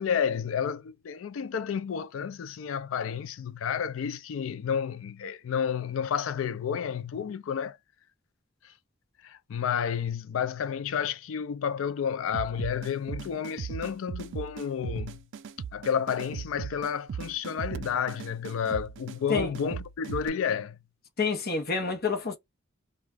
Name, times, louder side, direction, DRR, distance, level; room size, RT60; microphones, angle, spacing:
voice 1, 0.0-7.8 9.2-15.2 15.7-20.8, left 7 dB, 75° left, 0.4 m, -31 dB
sound 1, 12.3-20.3, right 7 dB, 65° right, 0.4 m, -38 dB
voice 2, 21.2-22.4, left 4 dB, 50° left, 0.9 m, -28 dB
2.4 x 2.2 x 3.3 m
head